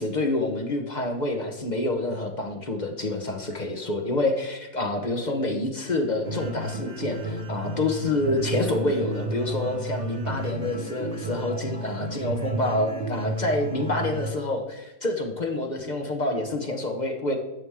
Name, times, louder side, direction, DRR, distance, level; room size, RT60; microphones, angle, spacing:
voice 1, 0.0-17.3, left 2 dB, 35° left, 3 dB, 0.7 m, -27 dB
sound 1, 6.2-14.2, right 1 dB, 30° right, 1.9 m, -32 dB
10.5 x 7.1 x 3.6 m, 1.1 s
omnidirectional pair, 2.0 m